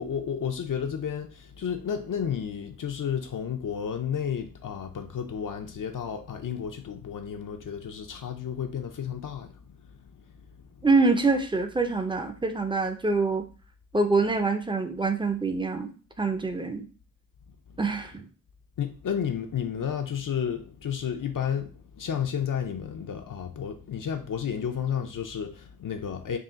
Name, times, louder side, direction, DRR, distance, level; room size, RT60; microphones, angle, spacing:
voice 1, 0.0-9.5 18.8-26.4, left 8 dB, 65° left, 0.5 m, -32 dB
voice 2, 10.8-13.5 13.9-16.9 17.8-18.3, right 3 dB, 15° right, 0.5 m, -25 dB
3.7 x 2.4 x 3.9 m
wide cardioid pair, 100°, 34 cm